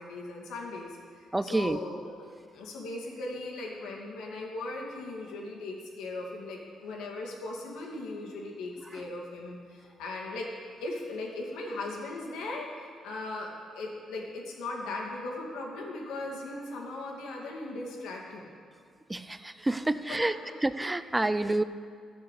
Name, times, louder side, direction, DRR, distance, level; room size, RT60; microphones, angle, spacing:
voice 1, 0.0-10.5 10.8-18.5 20.1-20.5, left 2 dB, 90° left, -1 dB, 2.3 m, -38 dB
voice 2, 1.3-1.8 8.9-9.0 19.1-20.4 20.6-21.6, right 2 dB, 15° right, 13 dB, 0.5 m, -28 dB
12.0 x 6.6 x 8.3 m, 2.1 s
cardioid pair, 90°, 0 cm